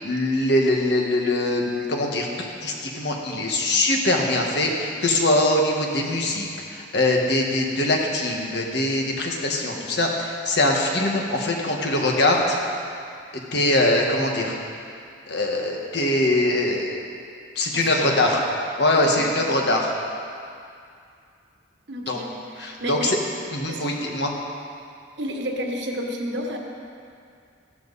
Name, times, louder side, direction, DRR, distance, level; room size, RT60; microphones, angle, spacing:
voice 1, 0.0-2.3 2.6-12.6 13.5-14.6 15.3-17.0 17.5-18.4 18.8-19.9 22.1-22.2 22.6-23.0 23.5-24.3, left 1 dB, 55° left, 0 dB, 1.7 m, -22 dB
voice 2, 17.7-18.4 19.0-19.7 21.9-23.2 23.7-23.9 25.2-26.6, equal, 60° right, 1 dB, 1.5 m, -32 dB
15.0 x 12.5 x 4.2 m, 2.4 s
head